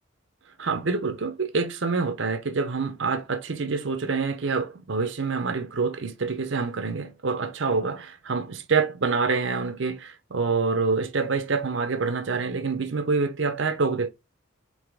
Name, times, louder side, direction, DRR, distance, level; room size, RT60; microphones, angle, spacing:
voice 1, 0.6-14.1, right 4 dB, 65° right, 0.7 m, -26 dB
4.9 x 2.8 x 3.5 m
head